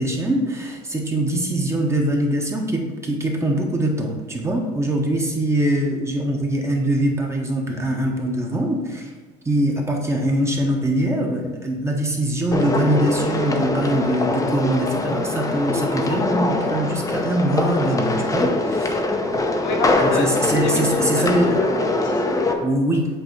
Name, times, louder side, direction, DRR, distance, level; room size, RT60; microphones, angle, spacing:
voice 1, 0.0-9.1 9.4-19.0 20.0-21.6 22.6-23.1, right 1 dB, 15° right, 0 dB, 1.0 m, -22 dB
sound 1, 12.5-22.5, left 2 dB, 15° left, 0.7 m, -23 dB
voice 2, 19.6-22.7, left 3 dB, 70° left, 1 dB, 1.3 m, -29 dB
7.8 x 3.0 x 4.6 m, 1.4 s
cardioid pair, 120°, 19 cm